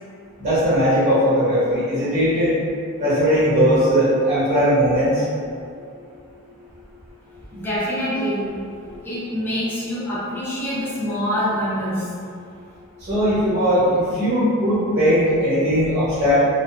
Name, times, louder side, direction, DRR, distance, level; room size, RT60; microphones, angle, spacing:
voice 1, 0.4-2.5 3.0-5.2 13.1-16.3, equal, 35° right, -11 dB, 0.8 m, -18 dB
voice 2, 7.5-8.5 9.0-12.1, equal, 10° left, -12 dB, 0.6 m, -25 dB
2.6 x 2.3 x 2.4 m, 2.3 s
head